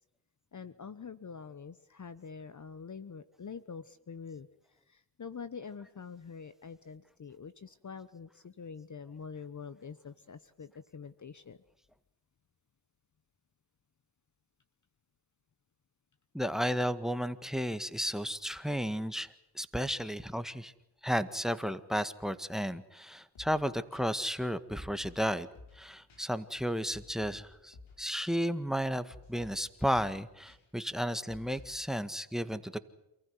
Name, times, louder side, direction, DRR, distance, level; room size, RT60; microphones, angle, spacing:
voice 1, 0.5-4.5 4.9-11.6, left 6 dB, 35° left, 14 dB, 1.1 m, -45 dB
voice 2, 16.3-20.7 21.0-25.5 25.7-32.8, equal, ahead, 13 dB, 1.8 m, -33 dB
sound 1, 23.3-23.6 23.9-24.0 25.0-25.3 25.5-25.8 26.1-26.2 26.9-27.5 27.7-28.0 28.3-28.4 29.1-29.6 29.9-30.2 30.5-30.6 31.3-31.8, left 3 dB, 75° left, 5.6 m, -53 dB
28.5 x 15.0 x 9.6 m, 0.90 s
supercardioid pair, 55°, 48 cm